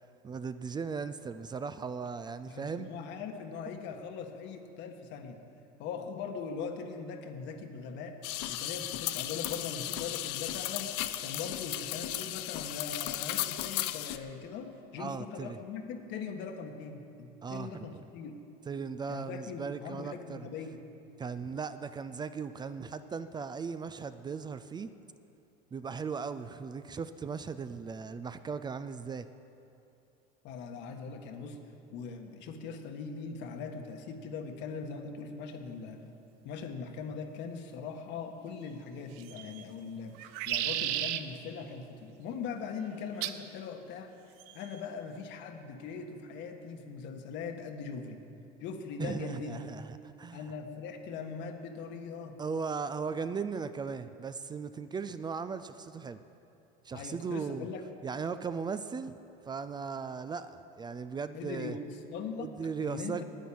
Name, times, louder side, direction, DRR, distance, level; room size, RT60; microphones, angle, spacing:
voice 1, 0.2-2.9 15.0-15.6 17.4-17.9 18.7-20.5 21.2-24.9 25.7-29.3 49.0-50.4 52.4-56.2 56.8-57.7 58.0-59.2 59.5-61.8 62.4-63.2, right 5 dB, 20° right, 11 dB, 0.4 m, -37 dB
voice 2, 2.5-5.4 5.8-8.2 8.5-18.3 19.1-20.8 30.4-31.6 31.9-36.0 36.4-44.1 44.5-48.2 48.6-49.7 50.3-52.4 56.9-57.9 61.3-62.5 62.8-63.2, left 5 dB, 60° left, 5 dB, 1.4 m, -41 dB
sound 1, 8.2-14.2, left 14 dB, 80° left, 0.6 m, -35 dB
sound 2, 39.2-39.6 40.2-41.2 43.2-43.5 44.4-44.8, right 12 dB, 75° right, 0.7 m, -33 dB
10.5 x 9.2 x 8.6 m, 2.7 s
supercardioid pair, 115°, 21 cm